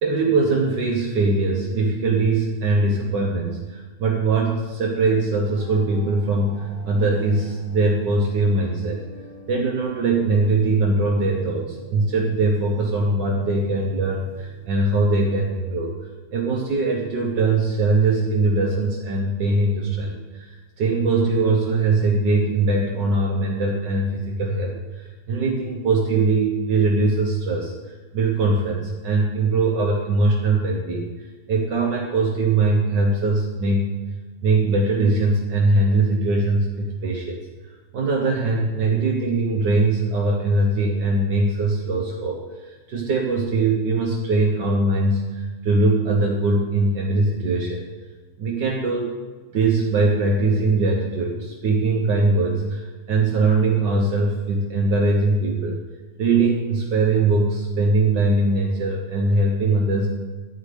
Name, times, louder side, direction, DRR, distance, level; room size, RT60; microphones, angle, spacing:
voice 1, 0.0-9.0 9.5-15.9 16.3-31.1 31.5-33.9 34.4-37.4 37.9-47.8 48.4-49.1 49.5-55.8 56.2-60.1, right 3 dB, 70° right, -1 dB, 1.0 m, -21 dB
sound 1, 5.5-15.0, right 1 dB, 30° right, 3.3 m, -45 dB
11.5 x 5.1 x 8.3 m, 1.3 s
omnidirectional pair, 3.5 m